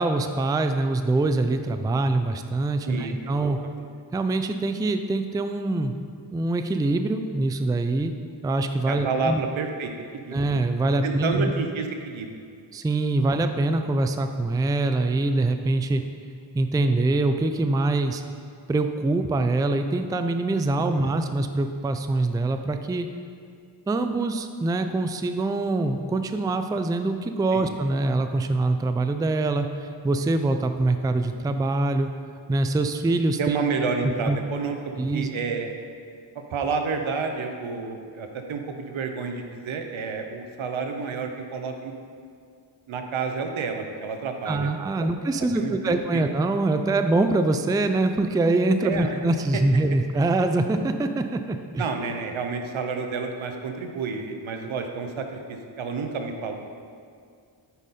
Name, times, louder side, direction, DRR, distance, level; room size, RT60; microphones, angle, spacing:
voice 1, 0.0-3.6 4.1-5.9 6.3-8.1 8.4-9.4 10.3-11.5 12.7-16.0 16.5-18.2 18.7-23.1 23.9-32.1 32.5-33.6 34.3-34.4 35.0-35.3 44.5-51.9, right 2 dB, 10° right, 8 dB, 0.3 m, -24 dB
voice 2, 2.9-3.8 8.9-10.4 11.0-12.4 20.8-21.2 27.5-27.7 33.4-34.8 35.1-35.7 36.5-41.9 42.9-45.1 45.3-46.0 48.8-49.2 49.5-49.6 51.8-56.6, right 4 dB, 85° right, 5 dB, 0.8 m, -30 dB
8.2 x 5.4 x 4.2 m, 2.2 s
cardioid pair, 65°, 47 cm